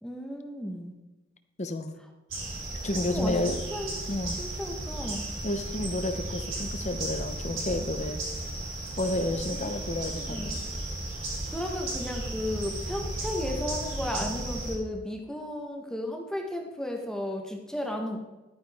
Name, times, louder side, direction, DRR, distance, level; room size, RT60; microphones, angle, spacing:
voice 1, 0.0-0.9 3.1-3.9 4.4-5.2 9.4-10.7 11.5-18.2, left 1 dB, 5° left, 2 dB, 1.0 m, -34 dB
voice 2, 1.6-1.9 2.8-3.6 4.1-4.4 5.4-8.2 9.0-10.6 14.2-14.4, left 1 dB, 35° left, 8 dB, 0.8 m, -31 dB
sound 1, 2.3-14.8, right 2 dB, 85° right, 3.5 m, -35 dB
12.0 x 9.3 x 3.5 m, 1.1 s
head